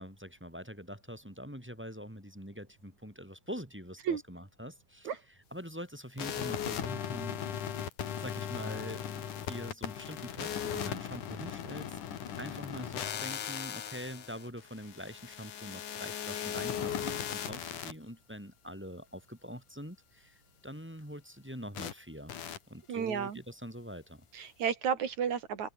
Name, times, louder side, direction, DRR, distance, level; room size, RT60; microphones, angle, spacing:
voice 1, 0.0-5.1 5.5-7.8 8.2-12.0 12.4-20.4 20.6-22.3 22.7-24.2, equal, 5° right, 3.3 m, -44 dB
sound 1, 6.2-17.9 21.7-21.9 22.3-22.6, left 9 dB, 65° left, 3.5 m, -38 dB
voice 2, 22.9-23.4 24.3-25.7, right 7 dB, 55° right, 4.1 m, -32 dB
omnidirectional pair, 3.9 m